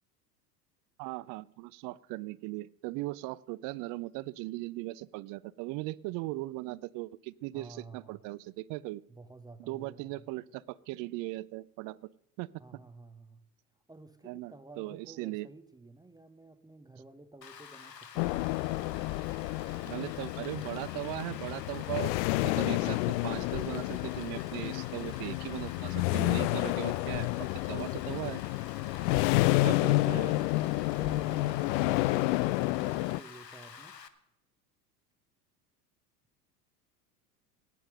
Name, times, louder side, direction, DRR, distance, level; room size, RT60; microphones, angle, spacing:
voice 1, 1.0-9.0 9.6-12.1 12.4-12.5 14.3-15.5 19.8-22.1 22.4-28.4 29.6-30.4, right 19 dB, 40° right, 21 dB, 0.6 m, -38 dB
voice 2, 7.5-8.2 9.1-10.3 12.6-13.4 13.9-18.7 30.0-34.0, right 3 dB, 10° right, 10 dB, 0.9 m, -52 dB
Rain, 17.4-34.1, left 7 dB, 90° left, 1.1 m, -49 dB
sound 1, 18.2-33.2, left 20 dB, 50° left, 0.5 m, -30 dB
18.0 x 9.4 x 6.5 m, 0.81 s
figure-of-eight pair, 75°, 48 cm